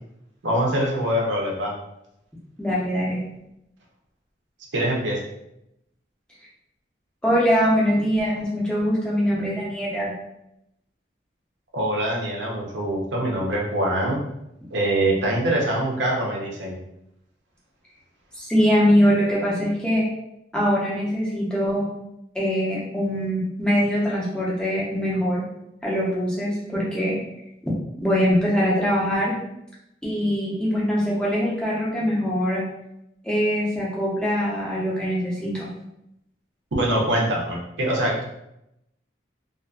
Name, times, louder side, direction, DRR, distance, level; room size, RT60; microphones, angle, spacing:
voice 1, 0.4-1.7 4.7-5.2 11.7-14.2 14.7-16.8 36.7-38.2, right 1 dB, 85° right, -2 dB, 0.6 m, -24 dB
voice 2, 2.6-3.2 7.2-10.1 18.3-20.0 20.5-21.9 22.3-25.4 25.8-27.2 28.0-29.3 30.0-32.6 33.2-35.7, equal, 5° left, -7 dB, 0.6 m, -22 dB
2.5 x 2.4 x 2.3 m, 0.83 s
head